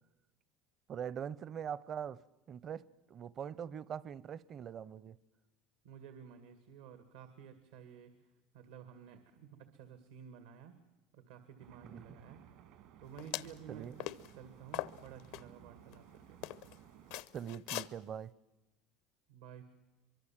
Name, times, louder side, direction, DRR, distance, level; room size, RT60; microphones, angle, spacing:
voice 1, 0.9-5.2 11.8-12.1 13.7-13.9 17.3-18.3, right 8 dB, 40° right, 0.7 m, -43 dB
voice 2, 5.8-8.1 8.5-10.7 11.1-12.4 13.0-14.1 14.3-16.4 19.3-19.7, right 7 dB, 90° right, 2.1 m, -53 dB
sound 1, 11.6-17.2, right 11 dB, 70° right, 1.8 m, -58 dB
sound 2, 13.2-13.6 14.0-14.3 14.7-15.4 15.9-16.0 16.4-16.7 17.1-17.9, left 15 dB, 75° left, 0.8 m, -40 dB
24.0 x 23.5 x 7.5 m
supercardioid pair, 105°, 0 cm